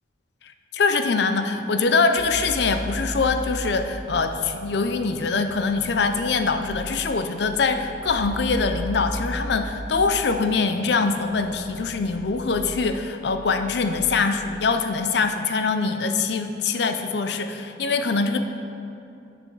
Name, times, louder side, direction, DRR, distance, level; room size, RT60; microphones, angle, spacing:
voice 1, 0.7-18.4, left 4 dB, 60° left, 8 dB, 0.5 m, -23 dB
sound 1, 2.2-13.9, equal, 85° left, 2.0 m, -36 dB
9.7 x 7.0 x 4.6 m, 2.7 s
head